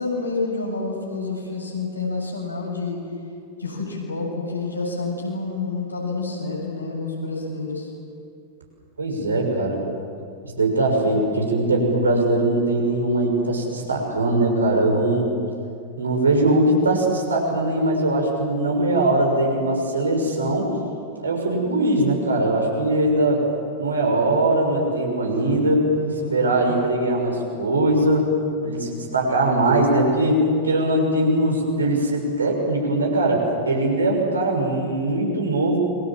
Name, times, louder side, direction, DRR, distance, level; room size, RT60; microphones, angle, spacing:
voice 1, 0.0-3.0 3.6-7.9 25.9-26.6, left 3 dB, 80° left, -1 dB, 7.6 m, -28 dB
voice 2, 9.0-9.8 10.5-15.3 16.0-20.7 21.2-23.4 23.8-25.9 26.3-28.3 28.6-35.8, right 1 dB, 75° right, 0 dB, 6.8 m, -21 dB
29.5 x 24.5 x 7.7 m, 2.4 s
figure-of-eight pair, 90°, 0 cm